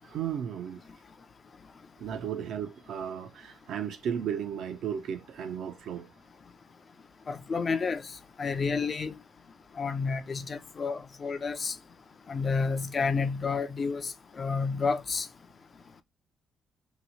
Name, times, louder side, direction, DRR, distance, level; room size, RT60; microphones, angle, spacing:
voice 1, 0.0-0.8 2.0-6.1, right 8 dB, 75° right, 0.5 m, -34 dB
voice 2, 7.3-8.1 8.4-9.1 9.8-11.8 12.3-15.3, left 4 dB, 40° left, 0.4 m, -30 dB
2.9 x 2.0 x 4.1 m
cardioid pair, 90°, 0 cm